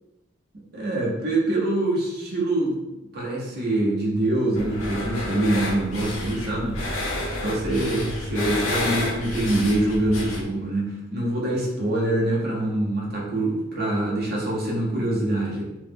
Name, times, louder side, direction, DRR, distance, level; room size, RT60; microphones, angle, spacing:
voice 1, 0.7-2.8 3.1-6.8 7.4-15.6, right 1 dB, 50° right, -4 dB, 0.8 m, -24 dB
sound 1, 4.5-10.4, left 1 dB, 85° left, 0.7 m, -30 dB
3.1 x 2.1 x 3.4 m, 1.0 s
head